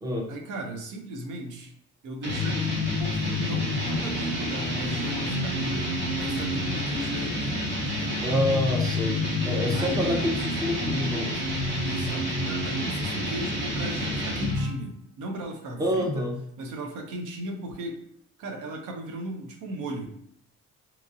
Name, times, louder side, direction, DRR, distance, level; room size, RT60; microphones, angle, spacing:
voice 1, 0.3-1.7 2.0-8.2 9.7-10.2 11.8-16.3 16.6-18.0 18.4-20.1, right 1 dB, 80° right, 2 dB, 0.6 m, -36 dB
sound 1, 2.2-14.8, left 1 dB, 40° right, 1.0 m, -28 dB
voice 2, 8.2-11.4 15.8-16.4, equal, 10° right, 0 dB, 0.6 m, -27 dB
2.9 x 2.5 x 2.6 m, 0.69 s
cardioid pair, 90°, 30 cm